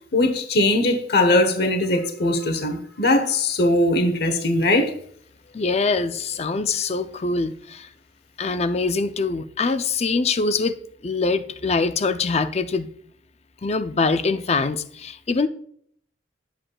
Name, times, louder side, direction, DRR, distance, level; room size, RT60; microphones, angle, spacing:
voice 1, 0.1-4.9, left 1 dB, 60° left, 0.9 m, -20 dB
voice 2, 5.5-7.9 8.4-10.7 11.0-12.9 13.6-15.5, left 4 dB, 35° left, 0.5 m, -23 dB
10.0 x 7.7 x 2.3 m
head